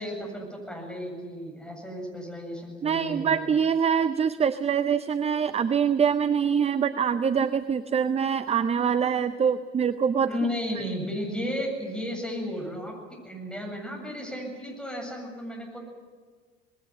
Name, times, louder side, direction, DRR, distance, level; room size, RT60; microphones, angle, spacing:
voice 1, 0.0-3.4 10.2-12.9 13.2-15.8, equal, 5° left, 0 dB, 7.9 m, -33 dB
voice 2, 2.8-10.3, right 7 dB, 20° right, 12 dB, 0.6 m, -24 dB
20.0 x 18.0 x 9.7 m, 1.5 s
figure-of-eight pair, 60°, 32 cm